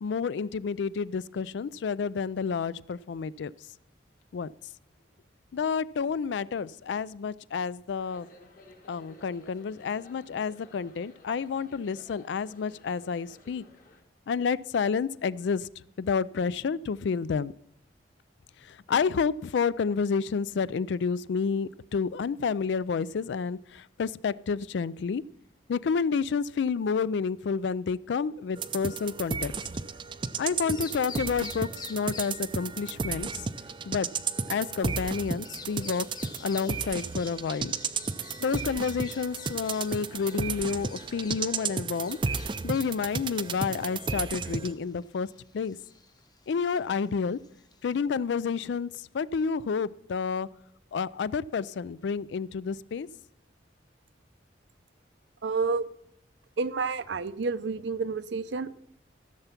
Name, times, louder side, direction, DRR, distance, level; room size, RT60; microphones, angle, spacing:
voice 1, 0.0-3.5 4.3-4.5 5.5-8.3 8.9-13.6 14.3-15.7 16.0-17.5 18.6-25.2 25.7-29.5 30.4-33.5 33.9-34.1 34.5-36.1 36.4-37.7 38.4-42.2 42.6-45.3 45.5-45.8 46.5-47.4 47.8-50.5 50.9-53.1, left 5 dB, 70° left, 19 dB, 0.4 m, -30 dB
sound 1, 8.0-14.0, left 2 dB, 50° left, 1.8 m, -55 dB
sound 2, 28.6-44.7, right 5 dB, 25° right, 0.4 m, -33 dB
Bird vocalization bird call bird song, 30.6-48.0, left 5 dB, 20° left, 0.7 m, -50 dB
voice 2, 55.4-55.9 56.6-58.7, right 4 dB, 75° right, 14 dB, 0.6 m, -29 dB
15.0 x 6.9 x 5.8 m, 0.75 s
head